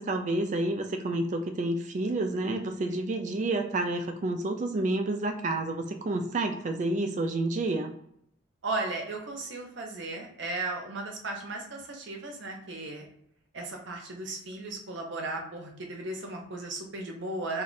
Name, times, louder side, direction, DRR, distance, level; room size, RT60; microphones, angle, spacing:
voice 1, 0.0-7.9, right 2 dB, 40° right, 5 dB, 0.3 m, -29 dB
voice 2, 8.6-13.1 13.5-17.6, right 2 dB, 70° right, 2 dB, 0.7 m, -36 dB
2.6 x 2.3 x 3.9 m, 0.72 s
head